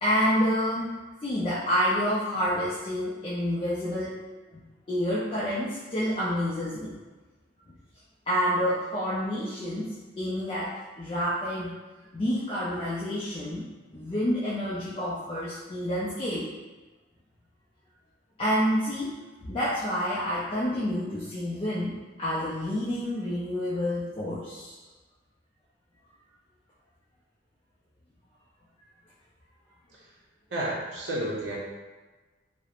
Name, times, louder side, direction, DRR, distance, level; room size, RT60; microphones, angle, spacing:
voice 1, 0.0-0.9 1.2-4.2 4.5-4.6 4.9-6.9 8.3-11.7 12.1-13.6 13.9-16.5 18.4-19.1 19.4-24.8, equal, 25° left, -9 dB, 0.3 m, -28 dB
voice 2, 30.5-31.6, right 1 dB, 65° right, -5 dB, 0.6 m, -31 dB
2.4 x 2.0 x 2.9 m, 1.2 s
head